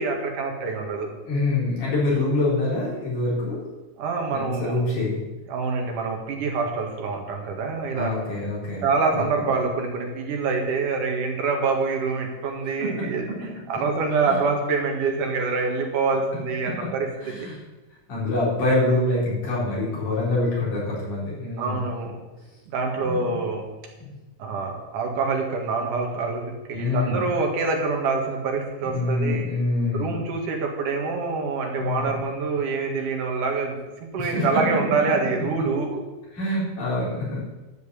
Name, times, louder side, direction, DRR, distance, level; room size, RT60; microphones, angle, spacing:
voice 1, 0.0-1.1 4.0-4.8 5.5-8.2 8.8-13.2 13.7-17.5 21.6-22.2 22.7-23.7 24.4-29.5 29.9-33.8 34.1-36.0, right 4 dB, 85° right, 1 dB, 3.3 m, -26 dB
voice 2, 1.3-3.6 4.3-5.2 7.9-9.3 12.8-12.9 14.2-14.4 17.2-17.6 18.1-21.8 23.0-23.4 24.0-24.1 26.7-27.2 28.8-30.1 31.8-32.2 34.2-34.6 36.3-37.4, left 2 dB, 80° left, -6 dB, 5.8 m, -25 dB
12.0 x 5.5 x 8.3 m, 1.1 s
omnidirectional pair, 3.5 m